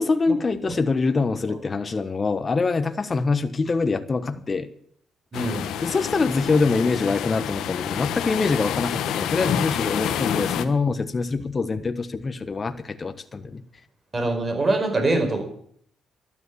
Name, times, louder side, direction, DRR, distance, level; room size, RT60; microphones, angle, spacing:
voice 1, 0.0-4.7 5.8-13.6, left 4 dB, 30° left, 9 dB, 1.2 m, -24 dB
sound 1, 5.3-10.7, left 9 dB, 85° left, 1.2 m, -28 dB
voice 2, 5.3-5.7 14.1-15.4, right 2 dB, 30° right, 5 dB, 4.9 m, -23 dB
12.5 x 11.0 x 8.4 m, 0.64 s
cardioid pair, 90°, 0 cm